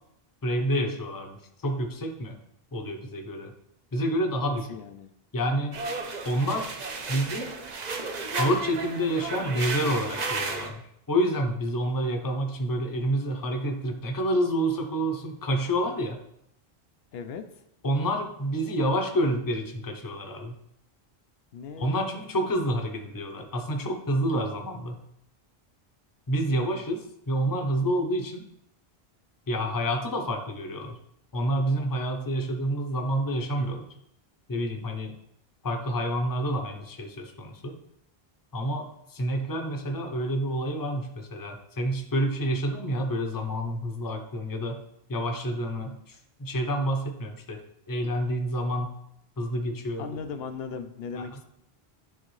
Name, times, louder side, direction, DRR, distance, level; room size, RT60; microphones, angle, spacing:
voice 1, 0.4-2.4 2.7-3.5 3.9-4.8 5.3-5.8 6.2-6.8 7.1-7.5 8.3-10.8 11.1-16.2 17.8-20.6 21.8-25.0 26.3-28.5 29.5-31.0 31.3-33.9 34.5-35.1 35.6-37.8 38.5-44.8 45.1-47.6 47.9-48.9 49.4-50.2 51.2-51.4, equal, 25° left, 3 dB, 0.7 m, -28 dB
voice 2, 4.5-5.1 17.1-17.5 21.5-22.1 24.3-24.4 50.0-51.5, left 5 dB, 75° left, 8 dB, 0.8 m, -38 dB
sound 1, 5.7-10.7, right 3 dB, 50° right, 0.8 m, -33 dB
10.5 x 3.6 x 3.2 m, 0.77 s
omnidirectional pair, 1.0 m